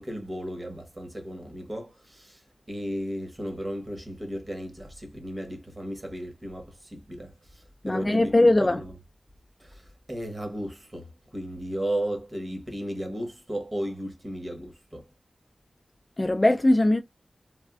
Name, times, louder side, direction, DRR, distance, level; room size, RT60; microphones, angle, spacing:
voice 1, 0.0-9.0 9.6-15.1, right 1 dB, 30° right, 1.0 m, -35 dB
voice 2, 7.8-8.8 16.2-17.0, left 1 dB, 25° left, 0.4 m, -20 dB
3.4 x 2.2 x 2.2 m
wide cardioid pair, 80°, 0 cm